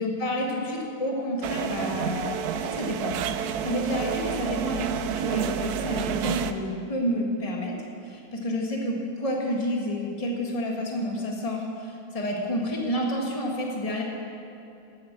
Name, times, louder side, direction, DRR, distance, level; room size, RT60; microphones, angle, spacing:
voice 1, 0.0-7.8 8.0-14.0, equal, 20° left, -1 dB, 1.6 m, -29 dB
sound 1, 1.4-6.5, right 9 dB, 80° right, 0.8 m, -29 dB
12.5 x 8.8 x 7.4 m, 2.8 s
omnidirectional pair, 2.3 m